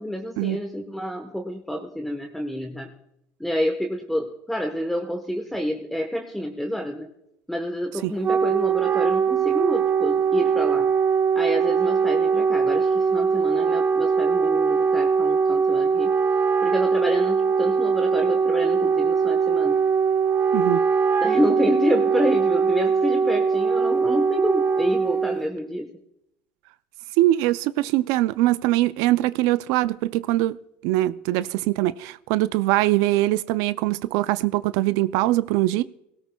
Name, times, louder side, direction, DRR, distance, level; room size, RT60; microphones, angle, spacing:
voice 1, 0.0-2.9 3.4-7.1 7.5-10.9 11.3-16.1 16.6-19.8 21.2-25.9, equal, ahead, 1.1 m, -28 dB
Wind instrument woodwind instrument, 8.0-25.5, right 6 dB, 35° right, 1.1 m, -21 dB
voice 2, 20.5-20.9 27.2-30.6 30.8-35.8, right 16 dB, 70° right, 0.4 m, -22 dB
17.5 x 17.0 x 2.3 m
supercardioid pair, 105°, 6 cm